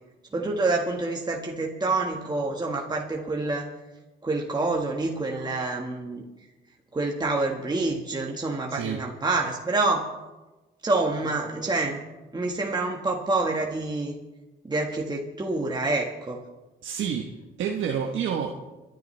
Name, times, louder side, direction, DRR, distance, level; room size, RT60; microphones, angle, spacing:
voice 1, 0.3-3.7 4.2-6.2 6.9-10.1 10.8-12.0 12.3-14.1 14.6-16.4, right 3 dB, 20° right, 0 dB, 1.6 m, -27 dB
voice 2, 8.7-9.0 16.8-18.5, right 7 dB, 80° right, 0 dB, 1.2 m, -29 dB
30.0 x 10.5 x 3.3 m, 1.1 s
cardioid pair, 90°, 20 cm